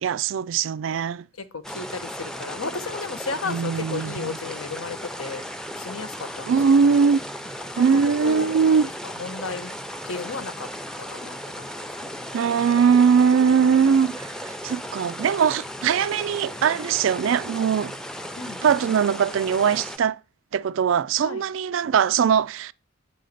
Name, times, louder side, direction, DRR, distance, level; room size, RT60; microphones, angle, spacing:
voice 1, 0.0-1.3 3.4-4.4 6.4-7.2 7.8-8.9 12.3-17.9 18.6-20.2 20.5-22.7, right 6 dB, 65° right, 0.3 m, -21 dB
voice 2, 1.4-5.4 5.8-6.5 6.8-7.0 7.8-8.8 9.2-9.7 10.1-10.7 11.1-12.3 18.4-18.6 21.2-21.5, left 4 dB, 80° left, 1.1 m, -34 dB
sound 1, 1.6-20.0, equal, 5° left, 0.5 m, -36 dB
8.3 x 3.9 x 6.6 m
head